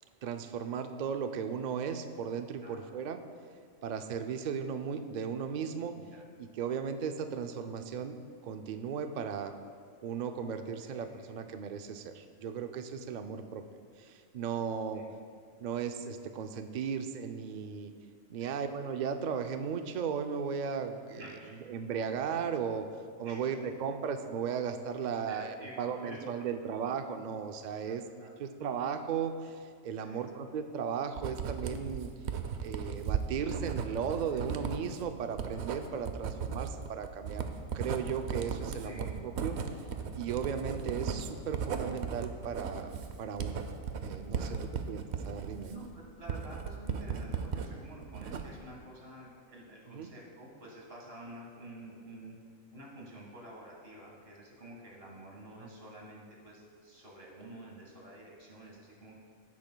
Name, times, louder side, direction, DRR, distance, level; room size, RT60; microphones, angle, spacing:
voice 1, 0.2-3.2 3.8-5.9 6.4-8.2 8.4-9.5 10.0-13.6 14.0-15.0 15.6-17.9 18.3-21.3 21.5-22.9 23.2-32.1 32.6-37.5 37.7-39.6 40.2-42.9 43.2-43.6 44.0-45.7 49.9-50.1 55.6-55.7, right 7 dB, 90° right, 7 dB, 0.4 m, -36 dB
voice 2, 10.8-11.4 14.9-15.1 18.4-18.6 21.2-21.6 23.2-23.5 25.3-26.2 27.8-28.4 30.0-30.3 34.3-34.6 38.8-39.1 44.4-44.7 45.6-52.4 52.7-59.2, right 1 dB, 50° right, -2 dB, 1.9 m, -49 dB
Writing, 31.2-47.7 48.0-48.7, right 6 dB, 65° right, 0.8 m, -36 dB
15.5 x 8.5 x 2.2 m, 2.2 s
omnidirectional pair, 1.4 m